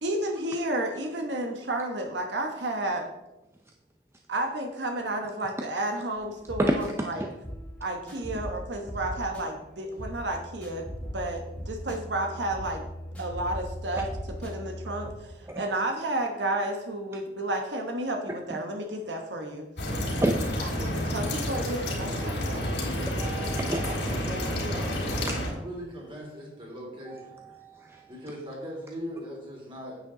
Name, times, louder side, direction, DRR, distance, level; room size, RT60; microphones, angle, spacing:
voice 1, 0.0-3.1 4.3-7.2 7.8-12.8 13.2-14.1 14.4-19.7 20.6-22.7, right 1 dB, 80° right, 3 dB, 1.1 m, -31 dB
sound 1, 6.2-15.1, equal, 5° left, 2.0 m, -39 dB
voice 2, 6.6-7.3 15.5-15.6 18.5-18.6 20.2-20.9 22.0-22.2 23.1-23.9 25.3-25.4 27.1-28.1, right 1 dB, 15° right, 2 dB, 0.5 m, -31 dB
sound 2, 19.8-25.5, left 1 dB, 85° left, 3.5 m, -30 dB
voice 3, 23.7-27.4 28.1-30.0, equal, 30° right, -3 dB, 3.3 m, -39 dB
9.6 x 8.2 x 3.8 m, 0.95 s
head